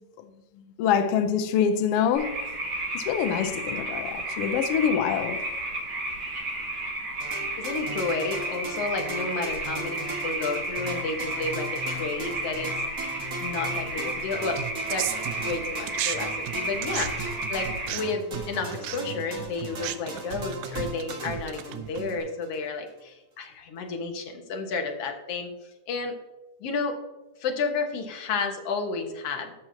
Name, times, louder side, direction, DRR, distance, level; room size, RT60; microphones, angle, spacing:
voice 1, 0.8-2.4 2.9-5.4, left 8 dB, 85° left, 1.3 m, -25 dB
sound 1, 2.1-17.9, right 2 dB, 60° right, 4.3 m, -32 dB
sound 2, 7.2-22.6, right 1 dB, 35° right, 1.6 m, -39 dB
voice 2, 7.6-12.7 13.4-15.1 15.4-17.1 17.5-25.5 25.9-26.2 26.6-27.0 27.4-29.5, left 4 dB, 60° left, 2.1 m, -31 dB
sound 3, 14.6-16.2 16.4-22.2, right 12 dB, 80° right, 2.0 m, -35 dB
13.5 x 6.2 x 2.7 m
omnidirectional pair, 3.3 m